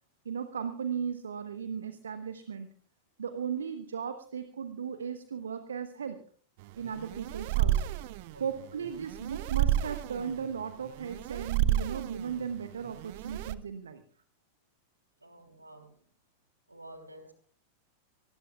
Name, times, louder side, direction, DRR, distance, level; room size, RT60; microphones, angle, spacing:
voice 1, 0.2-2.7 3.2-6.2 6.8-7.8 8.4-14.0, right 7 dB, 70° right, 10 dB, 1.2 m, -36 dB
sound 1, 6.6-13.5, right 12 dB, 50° right, 0.7 m, -31 dB
voice 2, 15.2-16.0 16.7-17.3, right 1 dB, 85° right, 6 dB, 3.3 m, -50 dB
26.5 x 19.0 x 2.4 m, 0.43 s
figure-of-eight pair, 90°, 0 cm